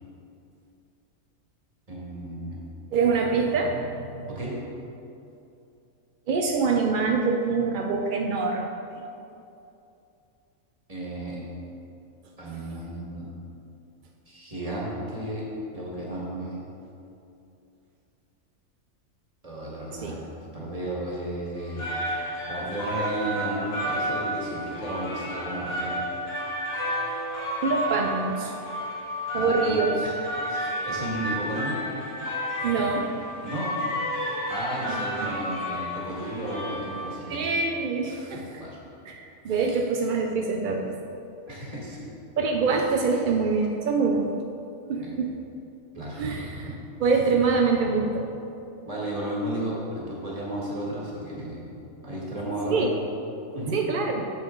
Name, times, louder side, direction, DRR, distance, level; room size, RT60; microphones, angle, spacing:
voice 1, 1.9-2.6 4.3-4.5 10.9-11.5 12.4-13.3 14.3-15.4 15.7-16.7 19.4-20.2 20.5-21.9 22.5-26.0 29.3-29.8 30.0-30.2 30.5-31.8 33.4-33.8 34.5-37.5 38.1-38.8 41.5-42.1 45.0-45.2 45.9-46.3 48.8-51.6 52.0-52.9 53.5-53.8, right 1 dB, 25° right, -5 dB, 1.7 m, -33 dB
voice 2, 2.9-4.3 6.3-8.7 20.0-20.2 27.6-28.5 29.3-30.0 32.6-33.1 34.9-35.4 37.3-38.6 39.1-40.9 42.4-44.3 44.9-45.4 46.2-46.7 47.0-48.3 52.7-52.9 53.7-54.3, right 4 dB, 65° right, 2 dB, 0.5 m, -25 dB
sound 1, 21.6-37.4, equal, 50° left, 1.5 m, -31 dB
8.2 x 7.0 x 3.8 m, 2.7 s
omnidirectional pair, 1.4 m